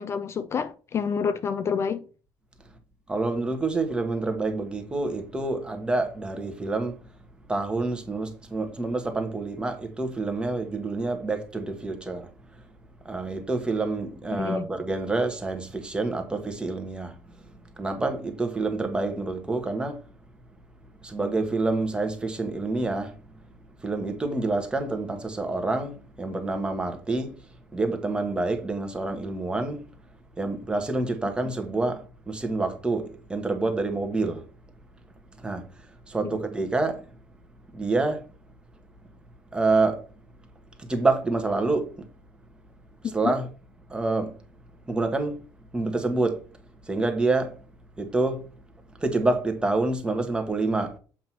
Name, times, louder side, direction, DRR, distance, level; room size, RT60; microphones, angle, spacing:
voice 1, 0.0-2.1 14.3-14.6 36.2-36.4 43.0-43.3, left 6 dB, 35° left, 0.4 m, -28 dB
voice 2, 3.1-7.0 7.5-12.6 13.0-17.2 17.7-20.0 21.0-23.2 23.8-27.3 27.7-29.8 30.4-34.4 35.4-37.2 37.7-38.2 39.5-40.0 40.8-42.1 43.0-43.5 43.9-44.4 44.8-45.3 45.7-46.4 46.8-47.6 48.0-48.4 49.0-50.9, right 3 dB, 10° right, 1.1 m, -27 dB
7.4 x 2.9 x 5.9 m
cardioid pair, 130°, 8 cm